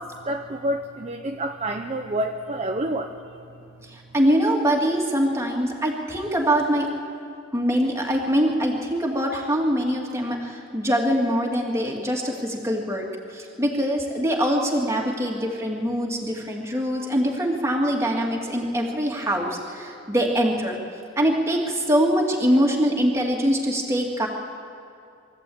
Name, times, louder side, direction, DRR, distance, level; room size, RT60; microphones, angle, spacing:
voice 1, 0.0-3.2, right 1 dB, 35° right, 3 dB, 0.8 m, -28 dB
voice 2, 3.9-6.9 7.5-13.1 13.3-20.8 21.2-24.3, equal, 15° right, -1 dB, 2.4 m, -23 dB
22.5 x 14.0 x 8.7 m, 2.6 s
head